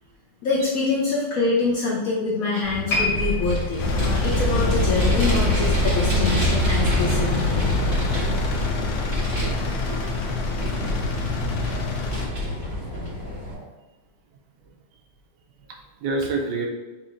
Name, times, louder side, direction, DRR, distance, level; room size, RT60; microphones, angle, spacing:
voice 1, 0.4-7.3, left 3 dB, 65° left, -3 dB, 0.9 m, -25 dB
Vehicle, 2.6-13.5, left 1 dB, 30° right, 1.4 m, -27 dB
sound 1, 2.9-6.2 6.5-6.8 7.4-7.5, left 3 dB, 40° left, 1.4 m, -31 dB
Engine, 3.8-12.3, left 2 dB, 85° left, 1.4 m, -25 dB
voice 2, 8.2-9.0 9.4-10.5 13.5-13.7 15.7-16.7, right 3 dB, 70° right, 1 dB, 1.1 m, -31 dB
4.2 x 2.8 x 3.7 m, 1.2 s
omnidirectional pair, 2.0 m